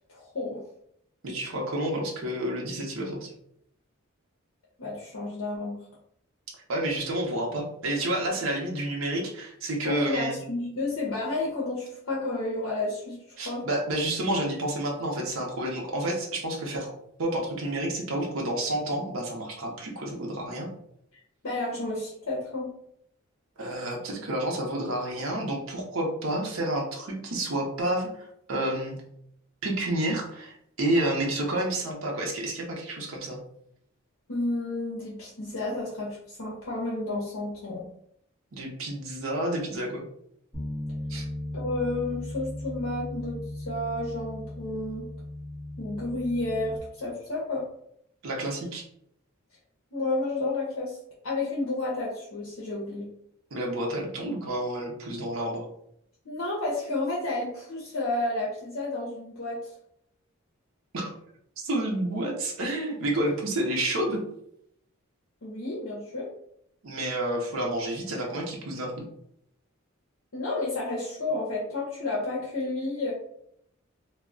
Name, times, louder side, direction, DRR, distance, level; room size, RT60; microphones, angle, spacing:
voice 1, 0.1-0.6 4.8-5.8 9.8-13.2 13.4-13.6 21.4-22.7 34.3-37.8 41.5-45.1 45.8-47.7 49.9-51.0 51.2-53.1 56.2-59.7 65.4-66.3 70.3-73.1, left 2 dB, 75° left, -5 dB, 0.7 m, -31 dB
voice 2, 1.2-3.3 6.7-10.4 13.4-16.9 17.2-20.7 23.6-28.9 29.6-33.4 38.5-40.0 41.1-41.2 48.2-48.8 53.5-55.6 60.9-61.1 61.6-64.2 66.8-69.0, right 1 dB, 70° right, -1 dB, 0.6 m, -30 dB
Bass guitar, 40.5-46.8, left 1 dB, 10° left, 1.1 m, -37 dB
2.2 x 2.1 x 3.6 m, 0.72 s
head